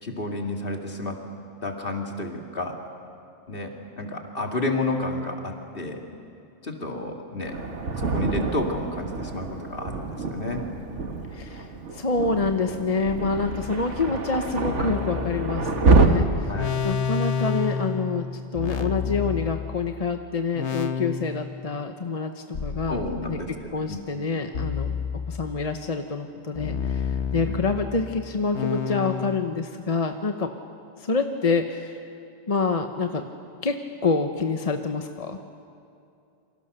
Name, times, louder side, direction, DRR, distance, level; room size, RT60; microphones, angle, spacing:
voice 1, 0.0-1.2 1.6-2.8 3.5-6.0 6.6-7.5 8.0-10.6 16.5-16.8 22.9-23.5 23.9-24.0 27.5-27.6, left 2 dB, 50° left, 2 dB, 2.6 m, -31 dB
Thunder, 7.4-16.1, right 3 dB, 80° right, 1.7 m, -26 dB
voice 2, 11.3-15.7 16.0-18.3 18.5-23.4 23.7-30.5 31.0-32.0 32.5-33.2 33.6-35.4, left 4 dB, 35° left, 6 dB, 1.0 m, -27 dB
sound 1, 13.1-20.1 20.5-21.7 22.5-23.7 24.5-25.8 26.5-29.4, left 6 dB, 75° left, 1.3 m, -31 dB
28.5 x 24.5 x 6.8 m, 2.5 s
omnidirectional pair, 1.2 m